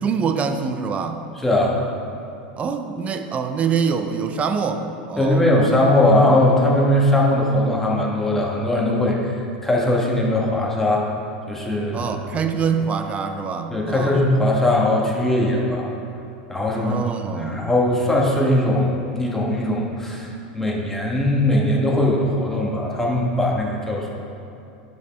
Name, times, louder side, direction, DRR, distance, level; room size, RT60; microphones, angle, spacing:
voice 1, 0.0-1.2 2.6-5.4 11.9-14.3 16.7-17.7, right 6 dB, 30° right, 7 dB, 0.5 m, -25 dB
voice 2, 1.4-1.8 5.2-9.3 9.6-11.1 11.5-12.1 13.7-15.9 16.5-17.0 17.4-24.1, left 1 dB, 10° left, -3 dB, 1.3 m, -20 dB
9.3 x 5.3 x 3.4 m, 2.7 s
hypercardioid pair, 105°, 5 cm